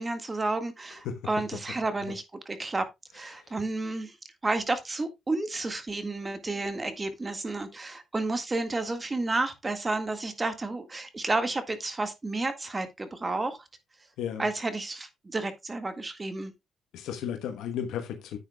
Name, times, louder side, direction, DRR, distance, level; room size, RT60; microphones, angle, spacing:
voice 1, 0.0-2.8 3.1-4.2 4.4-13.6 14.4-16.5, right 2 dB, 25° right, 1.8 m, -31 dB
voice 2, 16.9-18.4, left 8 dB, 85° left, 1.2 m, -34 dB
10.0 x 8.7 x 2.3 m
cardioid pair, 90°, 0 cm